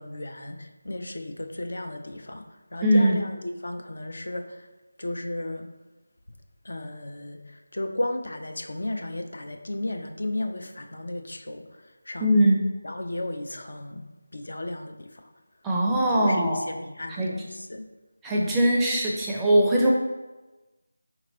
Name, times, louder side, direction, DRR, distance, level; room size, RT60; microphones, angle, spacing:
voice 1, 0.0-4.7 5.0-5.7 6.6-12.4 12.8-14.1 14.3-15.3 16.1-17.9 18.4-18.6, left 1 dB, 55° left, 5 dB, 0.5 m, -34 dB
voice 2, 2.8-3.2 12.2-12.6 15.6-16.6 17.2-17.3 18.2-19.9, right 1 dB, 5° right, -4 dB, 0.5 m, -21 dB
4.5 x 3.1 x 3.8 m, 1.1 s
figure-of-eight pair, 160°, 0 cm